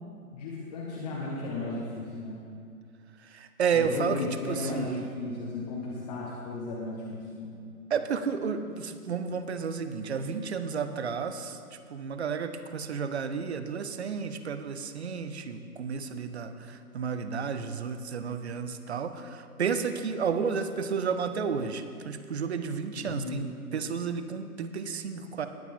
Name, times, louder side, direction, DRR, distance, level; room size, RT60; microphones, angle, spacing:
voice 1, 0.3-2.4 3.7-7.6 22.9-23.4, left 3 dB, 25° left, -6 dB, 1.6 m, -35 dB
voice 2, 3.2-5.1 7.9-25.5, right 6 dB, 45° right, 10 dB, 0.8 m, -32 dB
19.5 x 8.2 x 3.7 m, 2.4 s
figure-of-eight pair, 135°, 45 cm